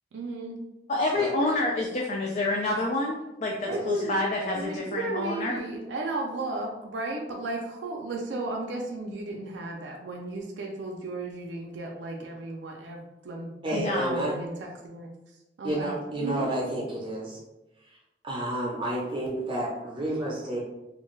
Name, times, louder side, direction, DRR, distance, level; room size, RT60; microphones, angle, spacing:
voice 1, 0.1-0.6 3.7-4.2 4.5-14.5 14.8-15.1 15.6-16.5, right 2 dB, 80° right, 0 dB, 0.4 m, -34 dB
voice 2, 0.9-5.6 13.7-14.2 15.8-15.9, left 2 dB, 40° left, -1 dB, 0.3 m, -28 dB
voice 3, 13.6-14.4 15.6-17.4 17.8-18.0 18.2-20.6, right 1 dB, 30° right, -4 dB, 0.5 m, -30 dB
2.5 x 2.2 x 3.1 m, 0.97 s
head